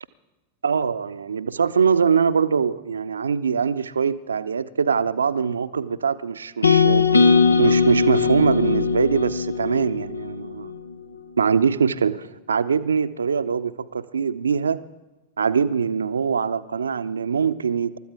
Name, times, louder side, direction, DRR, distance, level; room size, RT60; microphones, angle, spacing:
voice 1, 0.6-10.7 11.4-14.9 15.4-18.0, right 6 dB, 70° right, 14 dB, 0.6 m, -23 dB
sound 1, 6.6-10.8, left 5 dB, 80° left, 0.7 m, -19 dB
28.5 x 13.5 x 3.6 m, 1.1 s
figure-of-eight pair, 90°, 0 cm